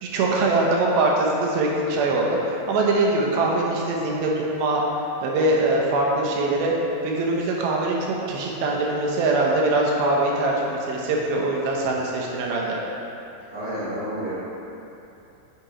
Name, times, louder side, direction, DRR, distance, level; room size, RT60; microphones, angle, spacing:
voice 1, 0.0-4.8 5.2-6.7 7.0-12.8, right 2 dB, 80° right, -2 dB, 2.6 m, -22 dB
voice 2, 13.5-14.3, equal, 60° right, -14 dB, 0.9 m, -30 dB
8.5 x 3.0 x 4.8 m, 2.9 s
omnidirectional pair, 4.4 m